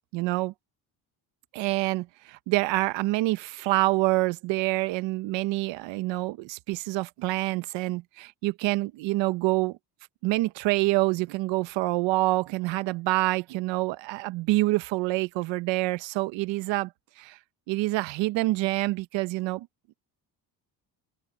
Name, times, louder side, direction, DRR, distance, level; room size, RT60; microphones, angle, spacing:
voice 1, 0.1-0.5 1.5-9.8 10.2-16.9 17.2-17.4 17.7-19.7, right 20 dB, 85° right, 1.0 m, -27 dB
cardioid pair, 80°, 44 cm